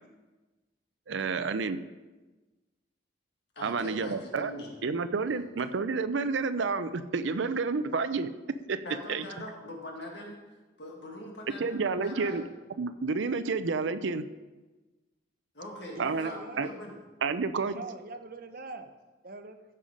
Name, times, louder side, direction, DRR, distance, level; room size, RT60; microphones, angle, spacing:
voice 1, 1.1-1.8 3.6-4.5 4.8-8.3 8.7-8.8 9.1-9.2 11.6-12.4 12.8-14.2 16.0-16.3 16.6-16.7 17.2-17.8, right 4 dB, 70° right, 11 dB, 0.5 m, -29 dB
voice 2, 3.6-4.7 5.3-5.4 8.8-10.3 10.8-12.4 15.5-17.0, left 1 dB, 60° left, 0 dB, 2.0 m, -42 dB
voice 3, 16.0-16.6 17.7-18.9 19.2-19.6, right 3 dB, 45° right, 7 dB, 0.8 m, -42 dB
15.5 x 5.6 x 5.0 m, 1.2 s
head